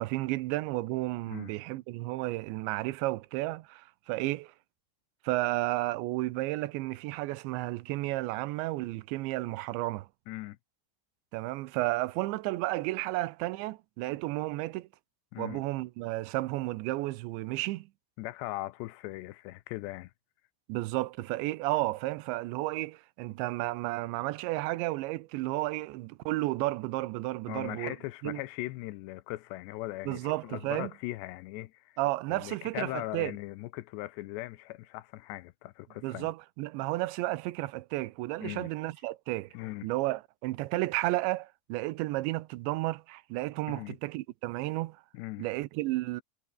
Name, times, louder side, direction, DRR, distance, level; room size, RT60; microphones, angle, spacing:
voice 1, 0.0-4.5 5.2-10.1 11.3-14.9 15.4-17.9 20.7-27.9 28.2-28.4 30.1-30.9 32.0-33.3 36.0-39.5 39.8-45.0 45.4-46.2, right 19 dB, 80° right, 3.0 m, -32 dB
voice 2, 10.3-10.6 15.3-15.6 18.2-20.1 27.5-32.0 32.3-36.3 38.4-38.7 39.5-39.9 43.7-44.0 45.1-45.5, left 18 dB, 75° left, 2.8 m, -39 dB
omnidirectional pair, 5.4 m